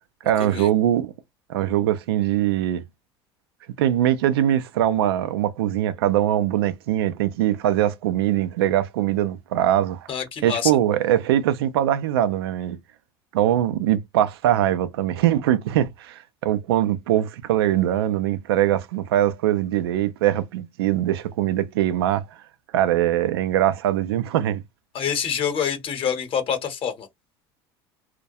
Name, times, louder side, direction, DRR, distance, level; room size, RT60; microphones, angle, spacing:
voice 1, 0.2-1.1 1.5-2.8 3.8-10.1 10.4-12.8 13.3-22.2 22.7-24.6, right 12 dB, 85° right, 0.4 m, -22 dB
voice 2, 10.1-10.7 24.9-27.1, left 8 dB, 45° left, 0.8 m, -26 dB
2.2 x 2.1 x 2.6 m
hypercardioid pair, 80°, 13 cm